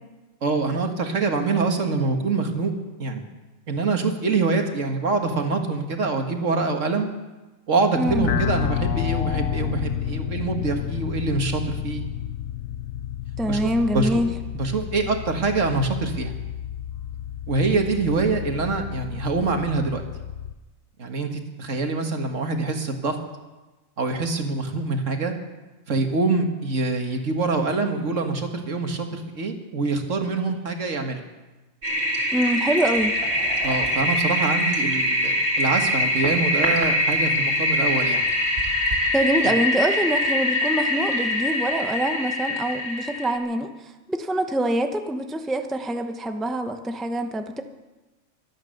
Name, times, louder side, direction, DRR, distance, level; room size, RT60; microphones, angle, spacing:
voice 1, 0.4-2.7 3.0-3.2 3.7-7.1 7.7-12.0 13.5-14.2 14.5-16.3 17.5-20.0 21.0-23.2 24.0-25.3 25.9-31.2 33.6-38.2 39.4-39.5, right 3 dB, 65° right, 4 dB, 1.9 m, -25 dB
voice 2, 8.0-8.3 13.4-14.3 32.3-33.1 39.1-47.6, right 1 dB, ahead, 6 dB, 0.7 m, -25 dB
sound 1, 8.1-20.5, left 11 dB, 80° left, 1.1 m, -30 dB
Toilet flush, 31.8-43.4, left 1 dB, 50° right, 2.9 m, -23 dB
24.5 x 9.0 x 6.5 m, 1.1 s
omnidirectional pair, 1.4 m